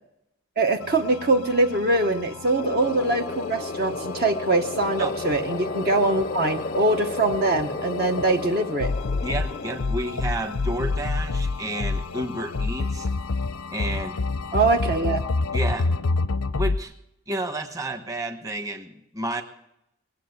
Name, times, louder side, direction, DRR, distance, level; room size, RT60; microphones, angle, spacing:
voice 1, 0.6-8.9 14.5-15.2, right 2 dB, 45° right, 4 dB, 0.8 m, -23 dB
sound 1, 0.8-16.8, left 3 dB, 90° left, 0.6 m, -29 dB
sound 2, 2.6-9.8, left 3 dB, 35° left, 0.5 m, -33 dB
voice 2, 9.2-13.1 13.7-14.2 15.5-15.9 16.5-16.9 17.3-19.4, right 1 dB, 15° right, 6 dB, 1.1 m, -31 dB
21.5 x 7.7 x 8.1 m, 0.82 s
head